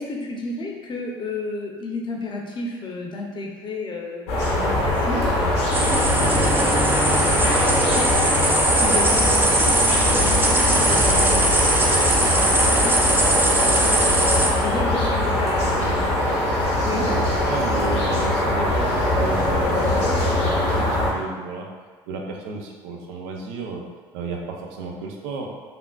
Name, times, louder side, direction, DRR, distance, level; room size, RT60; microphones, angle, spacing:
voice 1, 0.0-8.1 8.8-13.0 13.4-15.8 16.8-17.3 19.7-20.3, left 2 dB, 35° left, 0 dB, 0.6 m, -33 dB
sound 1, 4.3-21.1, left 1 dB, 80° left, 0.7 m, -22 dB
sound 2, 5.7-14.5, right 2 dB, 15° right, 0.4 m, -21 dB
voice 2, 16.8-21.7 22.1-23.8 24.1-25.5, right 4 dB, 75° right, 1 dB, 0.4 m, -32 dB
3.3 x 2.4 x 2.3 m, 1.4 s
hypercardioid pair, 65°, 13 cm